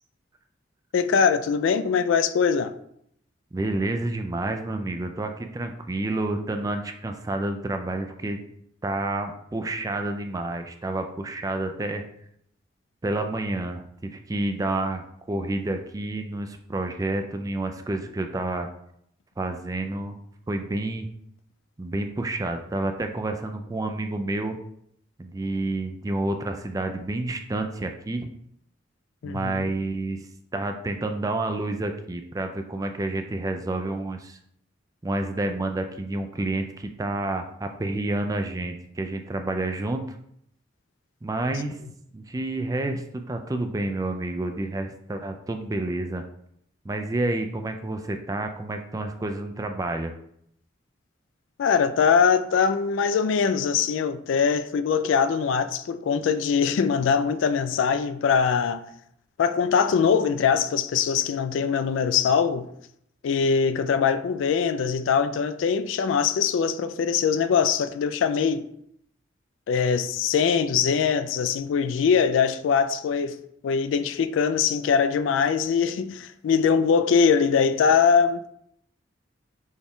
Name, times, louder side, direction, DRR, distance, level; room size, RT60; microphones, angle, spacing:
voice 1, 0.9-2.7 29.2-29.7 51.6-58.8 59.4-62.7 63.2-68.6 69.7-78.5, left 6 dB, 85° left, 0.3 m, -22 dB
voice 2, 3.5-8.4 8.8-12.0 13.0-18.7 19.4-20.2 20.5-21.1 21.8-24.6 25.2-28.3 29.2-34.4 35.0-40.1 41.2-41.8 42.1-46.2 46.8-50.1, right 2 dB, 20° right, 0.3 m, -29 dB
6.2 x 2.3 x 3.5 m
head